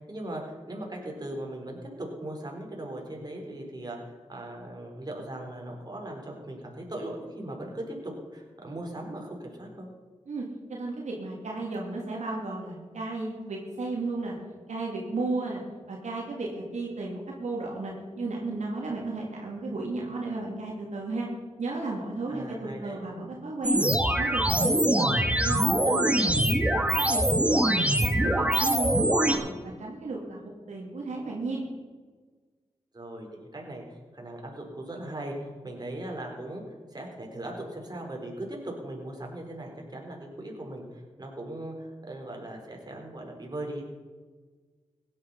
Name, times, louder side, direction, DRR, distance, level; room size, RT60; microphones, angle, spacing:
voice 1, 0.0-9.9 22.3-23.0 32.9-36.6 36.9-43.9, right 1 dB, 35° right, 0 dB, 4.3 m, -39 dB
voice 2, 10.7-14.4 14.7-21.3 21.6-23.9 24.2-25.1 25.4-27.2 27.5-30.4 30.7-31.7, right 3 dB, 80° right, -2 dB, 2.7 m, -34 dB
sound 1, 23.6-29.4, right 1 dB, 10° right, 1.8 m, -23 dB
16.5 x 10.5 x 5.6 m, 1.4 s
cardioid pair, 55°, 12 cm